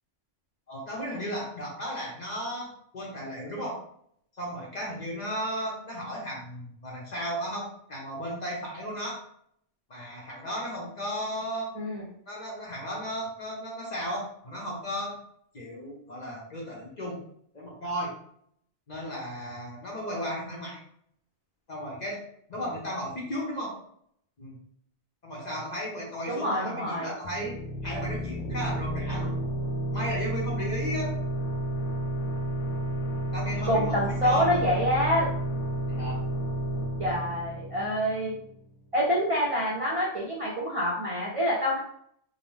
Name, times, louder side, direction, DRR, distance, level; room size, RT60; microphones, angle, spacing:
voice 1, 0.7-3.8 4.3-9.2 9.9-11.7 12.3-15.2 15.5-17.2 17.5-18.1 18.9-20.8 21.7-22.2 22.5-23.7 24.4-24.6 25.2-27.6 27.8-29.4 29.9-31.1 33.3-34.7 35.9-36.2, equal, 45° left, -3 dB, 0.7 m, -35 dB
voice 2, 26.3-27.1 33.7-35.3 37.0-38.4 38.9-41.8, equal, 40° right, -6 dB, 0.5 m, -26 dB
sound 1, 27.2-38.6, right 1 dB, 80° left, 0.9 m, -31 dB
2.7 x 2.1 x 3.1 m, 0.67 s
omnidirectional pair, 1.2 m